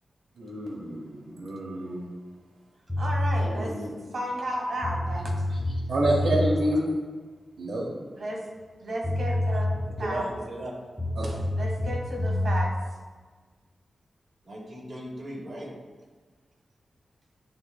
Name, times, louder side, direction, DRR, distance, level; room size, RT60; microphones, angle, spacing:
voice 1, 0.4-2.1 3.4-3.9 5.9-6.8 7.6-7.9 11.2-11.3, right 1 dB, 85° right, -3 dB, 1.0 m, -28 dB
sound 1, 2.9-3.5 4.5-4.6 4.8-6.5 8.7-8.8 9.0-10.2 11.0-12.7, left 1 dB, 5° right, 1.4 m, -27 dB
voice 2, 3.0-5.7 8.2-8.4 8.8-9.7 10.0-10.2 11.6-12.7, right 1 dB, 60° right, -2 dB, 1.6 m, -33 dB
voice 3, 6.1-6.7 9.8-10.7 11.0-11.4 14.4-15.7, right 1 dB, 40° right, -5 dB, 1.8 m, -38 dB
10.5 x 3.9 x 2.2 m, 1.4 s
wide cardioid pair, 135°, 0 cm